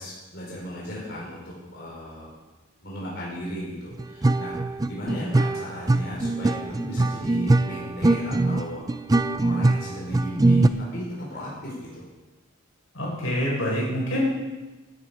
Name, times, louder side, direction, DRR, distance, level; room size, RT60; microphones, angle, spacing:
voice 1, 0.0-2.3 2.8-4.6 4.9-8.8 9.4-12.1, equal, 55° left, -5 dB, 4.6 m, -36 dB
sound 1, 4.0-10.7, right 2 dB, 20° right, 0.4 m, -22 dB
voice 2, 12.9-14.3, left 1 dB, 80° left, -4 dB, 5.8 m, -26 dB
15.0 x 12.0 x 5.1 m, 1.2 s
head